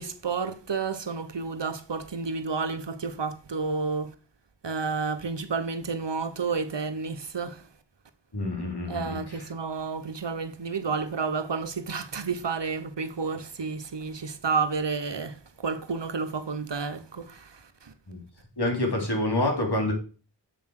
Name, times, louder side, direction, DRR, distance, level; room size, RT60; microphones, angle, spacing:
voice 1, 0.0-4.1 4.6-7.6 8.9-17.5 17.8-17.9, right 4 dB, 75° right, 1.2 m, -31 dB
voice 2, 8.3-9.2 18.1-18.2 18.6-19.9, left 1 dB, 65° left, 3.7 m, -27 dB
7.4 x 7.3 x 6.5 m
wide cardioid pair, 60°, 43 cm